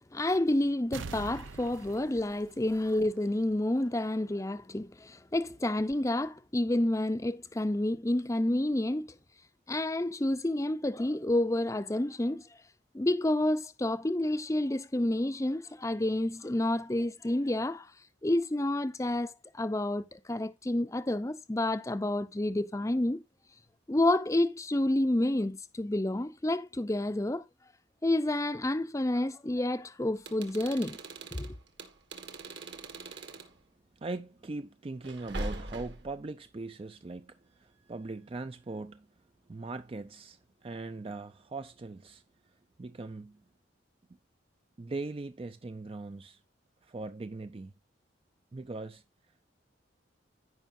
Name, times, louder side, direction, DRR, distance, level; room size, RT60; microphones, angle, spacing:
voice 1, 0.1-9.1 9.7-12.4 12.9-17.9 18.2-23.2 23.9-27.4 28.0-31.0 31.3-31.5, left 1 dB, 15° left, 0.6 m, -29 dB
sound 1, 0.9-3.5 3.9-4.0, right 4 dB, 85° right, 0.6 m, -44 dB
sound 2, 30.2-33.5 35.0-36.2, right 2 dB, 65° right, 1.7 m, -41 dB
voice 2, 34.0-39.1 39.5-43.4 44.8-46.4 46.8-47.7 48.5-49.0, right 3 dB, 30° right, 0.4 m, -40 dB
16.0 x 5.6 x 2.6 m
head